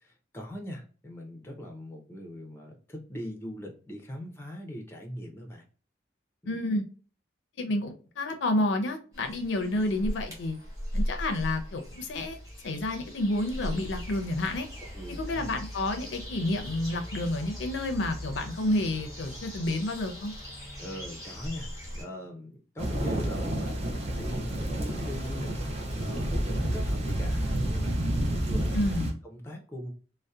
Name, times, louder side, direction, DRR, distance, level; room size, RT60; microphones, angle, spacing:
voice 1, 0.0-5.6 6.4-6.5 14.9-15.4 20.8-21.7 21.9-28.9 29.2-29.9, equal, 15° left, 0.5 m, -41 dB
voice 2, 6.5-6.8 7.6-10.6 10.9-12.4 12.6-14.7 15.1-20.3 28.7-29.1, left 1 dB, 70° left, 0.5 m, -30 dB
sound 1, 9.1-22.0, equal, 20° right, 0.9 m, -39 dB
sound 2, 22.8-29.1, right 1 dB, 35° right, 0.5 m, -29 dB
2.6 x 2.0 x 2.3 m
head